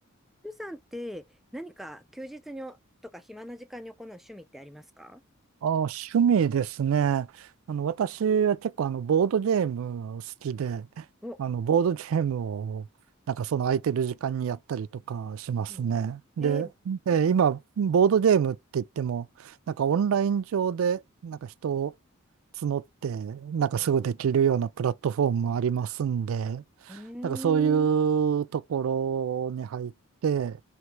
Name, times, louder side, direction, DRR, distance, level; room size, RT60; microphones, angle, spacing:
voice 1, 0.4-5.2 11.2-11.4 15.7-15.9 16.4-16.7 23.8-24.1 26.9-27.9, equal, ahead, 0.4 m, -40 dB
voice 2, 5.6-11.0 11.4-12.9 13.3-21.9 22.6-29.9 30.2-30.6, right 7 dB, 75° right, 0.3 m, -26 dB
3.1 x 2.9 x 4.6 m
head